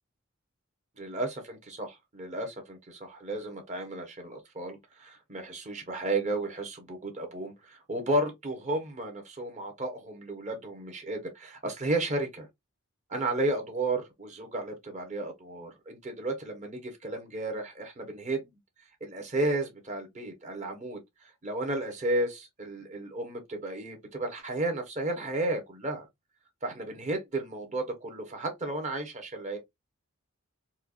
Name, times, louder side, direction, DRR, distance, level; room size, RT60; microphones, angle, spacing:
voice 1, 1.0-12.5 13.1-18.5 19.0-26.1 26.6-29.6, right 2 dB, 35° right, 1.1 m, -33 dB
4.4 x 2.4 x 2.5 m
head